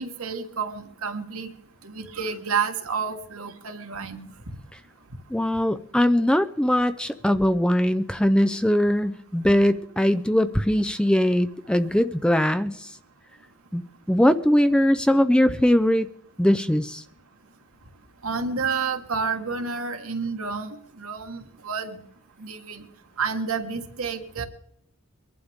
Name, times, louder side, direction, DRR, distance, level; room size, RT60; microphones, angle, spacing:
voice 1, 0.0-1.5 1.9-4.3 18.2-22.0 22.4-22.8 23.2-24.4, right 5 dB, 65° right, 6 dB, 1.5 m, -30 dB
voice 2, 5.3-12.9 13.7-13.8 14.1-16.1 16.4-17.0, equal, 5° left, 11 dB, 0.4 m, -21 dB
23.5 x 11.5 x 3.6 m, 0.74 s
head